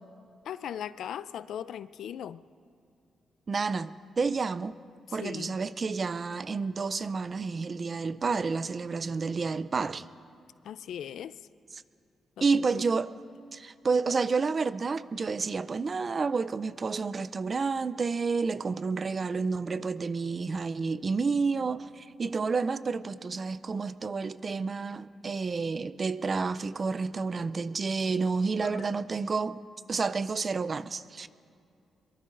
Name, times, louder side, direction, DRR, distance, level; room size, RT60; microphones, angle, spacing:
voice 1, 0.4-2.4 5.1-5.6 10.6-11.4 12.4-12.8 28.6-28.8, left 9 dB, 80° left, 0.4 m, -39 dB
voice 2, 3.5-4.7 5.1-10.1 12.4-13.1 13.5-29.6 29.9-31.3, right 4 dB, 35° right, 0.4 m, -30 dB
23.0 x 23.0 x 2.6 m
cardioid pair, 110°, 0 cm